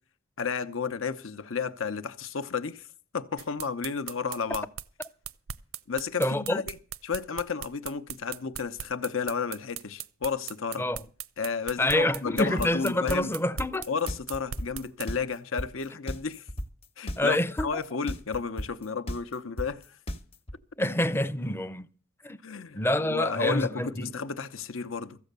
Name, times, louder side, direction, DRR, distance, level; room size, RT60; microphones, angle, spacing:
voice 1, 0.4-2.9 3.1-4.7 5.9-6.6 7.0-10.9 11.4-13.3 13.9-16.4 17.0-20.0 22.4-25.2, left 5 dB, 75° left, 0.8 m, -32 dB
sound 1, 3.4-15.1, right 10 dB, 85° right, 0.5 m, -39 dB
voice 2, 6.2-6.6 10.8-11.0 11.8-13.9 17.2-17.8 20.8-21.9 22.2-22.4 22.7-24.1, left 1 dB, 10° left, 0.5 m, -27 dB
sound 2, 12.6-20.5, equal, 30° left, 0.9 m, -34 dB
14.5 x 8.2 x 6.7 m
head